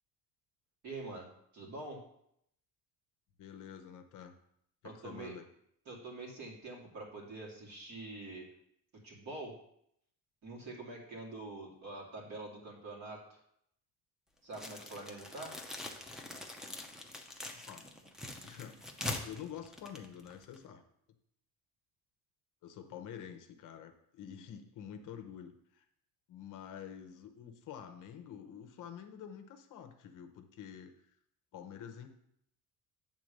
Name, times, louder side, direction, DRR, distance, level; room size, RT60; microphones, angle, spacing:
voice 1, 0.8-2.0 4.8-5.3 5.9-8.5 9.0-9.5 10.4-13.4 14.4-15.6, right 2 dB, 45° right, -2 dB, 2.3 m, -45 dB
voice 2, 3.4-4.3 4.8-5.5 17.5-17.8 18.4-18.8 19.2-20.8 22.6-25.8 26.3-31.0 31.5-32.1, left 8 dB, 50° left, 6 dB, 0.9 m, -48 dB
sound 1, 14.5-20.6, left 1 dB, ahead, 0.6 m, -43 dB
8.6 x 3.7 x 6.4 m, 0.72 s
cardioid pair, 155°, 38 cm